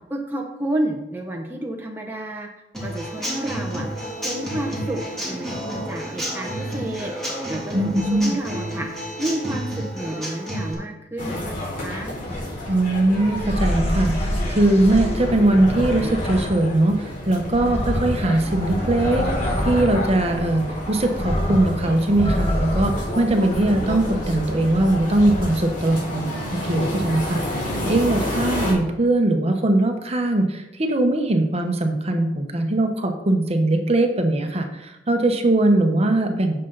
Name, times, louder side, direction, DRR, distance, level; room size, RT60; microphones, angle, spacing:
voice 1, 0.1-2.5 2.8-3.8 4.2-5.0 5.3-7.1 7.5-8.9 9.2-12.1, right 1 dB, 15° right, 0 dB, 0.9 m, -30 dB
Human voice / Acoustic guitar / Drum, 2.7-10.7, right 1 dB, 5° left, 3.2 m, -30 dB
voice 2, 7.7-8.3 12.7-19.3 19.6-36.7, right 1 dB, 35° right, 5 dB, 1.1 m, -21 dB
sound 1, 11.2-28.7, left 1 dB, 50° left, 3.5 m, -31 dB
sound 2, 12.3-12.6 13.3-16.8 17.3-25.8, equal, 35° left, 1.7 m, -27 dB
9.8 x 6.7 x 4.0 m, 0.94 s
head